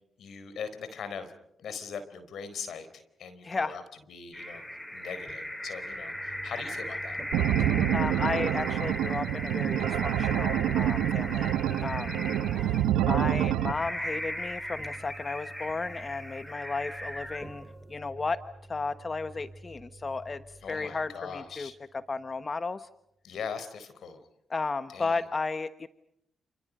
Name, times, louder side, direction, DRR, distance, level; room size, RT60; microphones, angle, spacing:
voice 1, 0.2-1.3 1.6-2.9 3.2-3.8 4.1-4.6 4.9-7.2 20.6-21.7 23.2-24.2 24.9-25.2, left 6 dB, 75° left, 11 dB, 4.3 m, -40 dB
voice 2, 3.4-3.8 7.6-11.5 11.8-12.2 12.6-17.6 17.9-18.4 18.7-22.9 24.5-25.9, left 3 dB, 40° left, 11 dB, 1.2 m, -34 dB
sound 1, 4.3-17.8, equal, 10° left, 4.6 m, -38 dB
sound 2, 6.1-22.5, right 2 dB, 45° right, 7.4 m, -50 dB
sound 3, 7.3-13.7, right 11 dB, 90° right, 1.2 m, -27 dB
29.5 x 29.5 x 5.3 m, 0.77 s
supercardioid pair, 50°, 0 cm